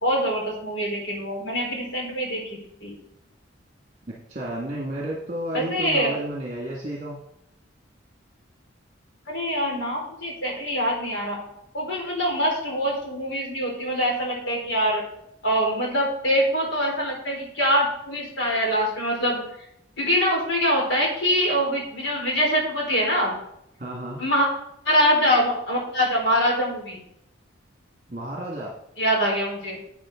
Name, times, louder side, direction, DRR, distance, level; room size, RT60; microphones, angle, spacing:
voice 1, 0.0-2.9 5.5-6.2 9.3-11.4 11.7-15.0 15.4-19.4 20.0-23.3 24.2-24.5 24.8-27.0 29.0-29.8, equal, 70° left, -1 dB, 4.1 m, -24 dB
voice 2, 4.3-7.2 23.8-24.2 28.1-28.7, right 1 dB, 35° right, -3 dB, 1.9 m, -31 dB
12.0 x 8.0 x 3.8 m, 0.76 s
head